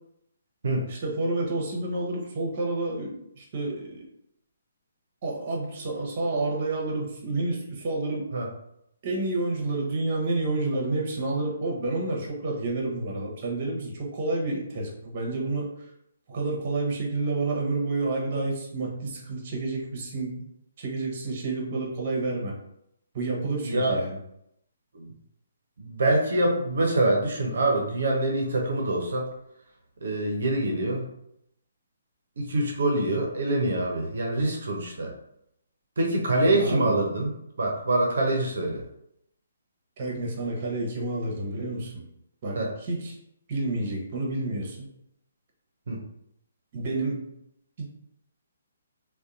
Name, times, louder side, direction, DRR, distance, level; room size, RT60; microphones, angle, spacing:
voice 1, 0.9-4.1 5.2-8.3 9.0-15.7 16.3-20.4 20.8-22.5 23.1-24.2 36.5-37.0 40.0-42.0 42.4-43.2 43.5-44.9 46.7-47.3 47.8-47.9, right 2 dB, 45° right, -1 dB, 0.9 m, -29 dB
voice 2, 23.6-24.0 24.9-25.1 25.8-29.3 30.0-31.1 32.4-35.1 36.0-37.3 37.6-38.8 42.5-42.7 45.9-46.0, right 2 dB, 70° right, 0 dB, 0.6 m, -25 dB
2.7 x 2.2 x 2.4 m, 0.77 s
hypercardioid pair, 145°, 0 cm